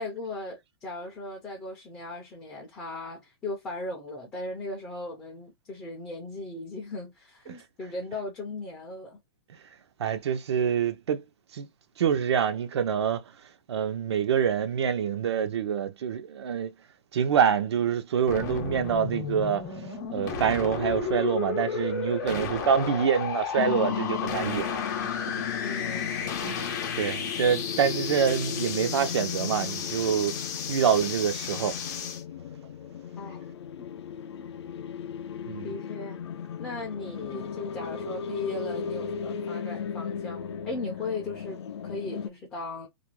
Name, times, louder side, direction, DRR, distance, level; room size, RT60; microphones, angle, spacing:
voice 1, 0.0-9.2 25.6-26.2 33.2-33.5 35.6-36.3 36.6-42.9, left 2 dB, 10° left, 0.4 m, -37 dB
voice 2, 10.0-11.3 11.5-11.7 12.0-16.7 17.1-24.8 26.4-31.8 35.5-35.7, right 7 dB, 85° right, 0.6 m, -26 dB
sound 1, 18.3-32.2, left 6 dB, 45° left, 0.7 m, -33 dB
sound 2, 23.6-42.3, left 8 dB, 85° left, 0.4 m, -36 dB
2.5 x 2.1 x 3.0 m
hypercardioid pair, 170°, 14 cm